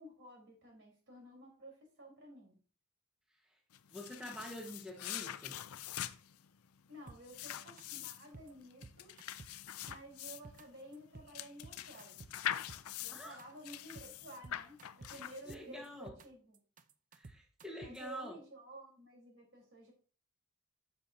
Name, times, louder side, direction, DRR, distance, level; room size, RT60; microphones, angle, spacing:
voice 1, 0.0-2.6 6.9-9.1 9.9-12.2 13.0-16.6 17.8-19.9, right 1 dB, 60° right, 1 dB, 3.8 m, -53 dB
sound 1, 3.7-15.9, left 11 dB, 80° left, 0.5 m, -44 dB
voice 2, 3.9-5.6 13.1-13.4 15.5-16.1 17.1-18.4, equal, 5° right, 0 dB, 1.3 m, -47 dB
sound 2, 7.1-7.4 7.8-7.9 8.1-8.5 8.8-9.6 9.9-10.6 10.9-11.3 11.6-13.1 13.4-13.5 13.7-14.1 14.4-15.2 15.5-16.3 16.5-18.1, right 3 dB, 35° right, 0.6 m, -53 dB
10.0 x 7.0 x 2.7 m, 0.40 s
head